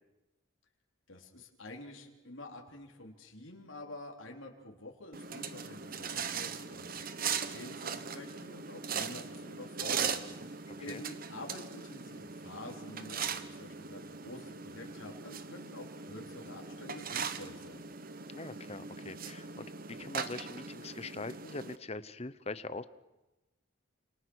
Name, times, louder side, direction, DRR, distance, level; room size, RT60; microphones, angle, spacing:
voice 1, 1.1-17.9, left 2 dB, 70° left, 1 dB, 3.8 m, -48 dB
sound 1, 5.1-21.8, right 6 dB, 45° right, 1.2 m, -40 dB
voice 2, 10.7-11.0 18.3-22.8, left 3 dB, 30° left, 14 dB, 0.9 m, -42 dB
29.0 x 27.5 x 6.4 m, 1.1 s
head